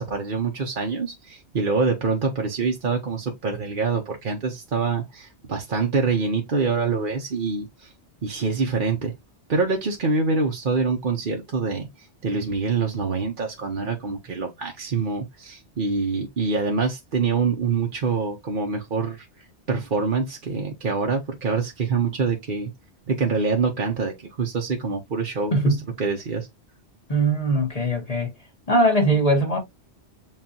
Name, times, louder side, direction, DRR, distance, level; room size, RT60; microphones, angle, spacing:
voice 1, 0.0-7.9 8.2-9.1 9.5-11.9 12.2-19.3 19.7-22.7 23.1-26.5, right 4 dB, 50° right, 1.0 m, -25 dB
voice 2, 25.5-25.9 27.1-28.3 28.7-29.6, right 1 dB, 35° left, 1.5 m, -21 dB
7.5 x 2.5 x 2.8 m
omnidirectional pair, 1.1 m